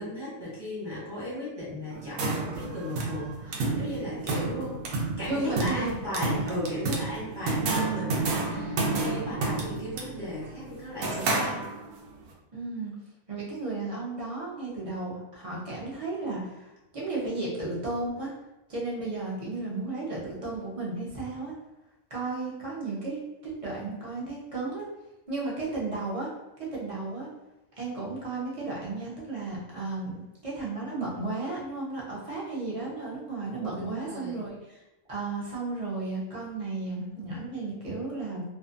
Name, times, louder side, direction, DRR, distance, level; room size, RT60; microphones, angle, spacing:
voice 1, 0.0-4.8 5.2-11.7 33.7-34.4, left 1 dB, 20° right, -9 dB, 1.0 m, -36 dB
sound 1, 1.9-12.1, right 3 dB, 70° right, 0.9 m, -30 dB
voice 2, 5.3-6.0 12.5-12.9 13.3-18.3 18.7-21.5 22.1-24.9 25.3-26.3 26.6-27.3 27.8-34.8 35.1-38.4, right 3 dB, 40° right, -6 dB, 0.5 m, -34 dB
2.5 x 2.4 x 2.5 m, 0.99 s
omnidirectional pair, 1.5 m